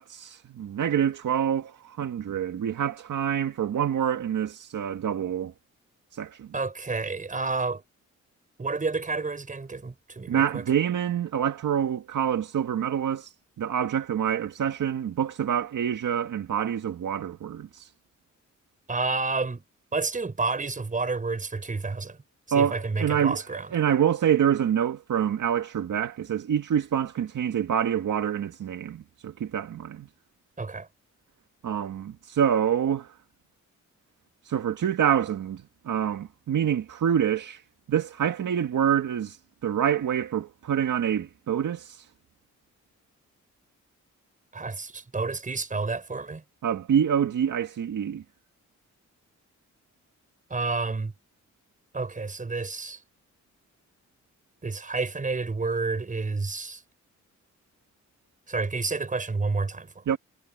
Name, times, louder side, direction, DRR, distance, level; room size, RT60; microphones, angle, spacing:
voice 1, 0.0-5.5 6.1-6.5 10.3-17.9 22.5-23.4 23.7-30.1 31.6-33.1 34.4-37.6 37.9-42.1 46.6-48.2 60.1-60.2, right 9 dB, 85° right, 1.8 m, -26 dB
voice 2, 6.5-7.8 8.6-10.6 18.9-19.6 19.9-22.2 22.5-23.7 30.6-30.9 44.5-46.4 50.5-51.1 51.9-53.0 54.6-56.8 58.5-60.0, right 3 dB, 25° right, 5.5 m, -30 dB
wide cardioid pair, 160°, 30 cm